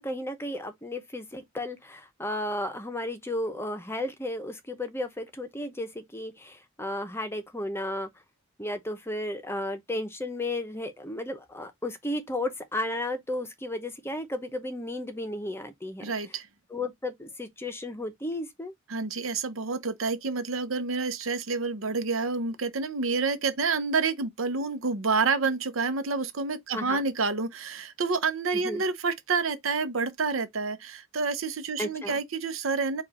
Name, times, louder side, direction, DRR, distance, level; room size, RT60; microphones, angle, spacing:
voice 1, 0.0-8.1 8.6-16.1 16.7-18.7 26.7-27.0 28.5-28.8 31.8-32.2, left 1 dB, 10° left, 0.8 m, -34 dB
voice 2, 16.0-16.5 18.9-33.0, right 4 dB, 90° right, 0.7 m, -28 dB
4.8 x 2.4 x 4.1 m
head